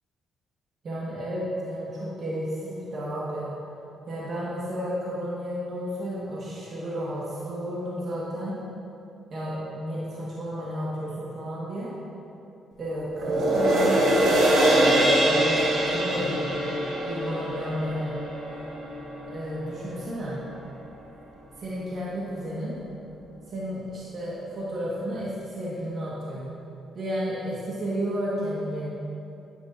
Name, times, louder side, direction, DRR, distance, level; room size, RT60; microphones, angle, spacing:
voice 1, 0.8-3.5 4.1-8.6 9.3-11.9 12.8-16.4 17.0-18.1 19.3-20.4 21.6-22.8 23.5-26.5 26.9-28.9, equal, 50° right, -7 dB, 1.7 m, -32 dB
sound 1, 13.1-19.7 20.2-20.3, right 1 dB, 75° right, 2.0 m, -23 dB
9.8 x 9.4 x 2.7 m, 2.8 s
cardioid pair, 90°, 0 cm